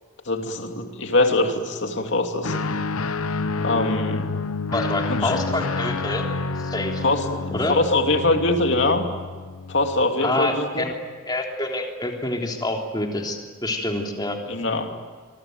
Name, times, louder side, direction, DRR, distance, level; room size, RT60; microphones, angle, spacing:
voice 1, 0.3-2.6 3.6-4.3 5.1-5.4 7.0-9.0 9.7-10.9 14.5-14.9, left 2 dB, 55° left, 4 dB, 2.8 m, -23 dB
Guitar, 2.4-10.1, left 3 dB, 85° left, 1.0 m, -28 dB
voice 2, 4.7-6.2 6.5-7.0 7.5-7.8 10.2-10.9 11.2-14.4, left 2 dB, 20° left, 1 dB, 3.4 m, -27 dB
26.5 x 23.5 x 9.2 m, 1.5 s
head